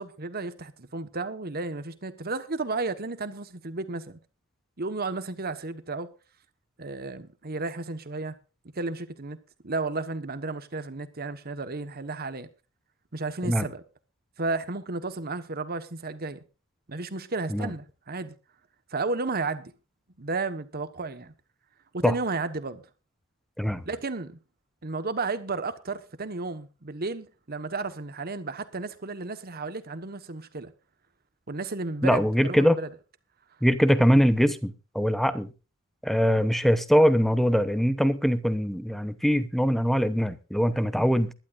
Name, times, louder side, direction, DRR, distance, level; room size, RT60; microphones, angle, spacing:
voice 1, 0.0-4.2 4.8-6.1 6.8-8.3 8.7-9.4 9.6-12.5 13.1-13.8 14.4-16.4 16.9-18.3 18.9-19.7 20.2-21.3 21.9-22.8 23.8-24.4 24.8-30.7 31.5-32.9, right 3 dB, 45° right, 1.3 m, -33 dB
voice 2, 32.0-32.8 33.6-35.5 36.0-41.3, equal, ahead, 0.8 m, -22 dB
22.0 x 12.0 x 2.6 m
head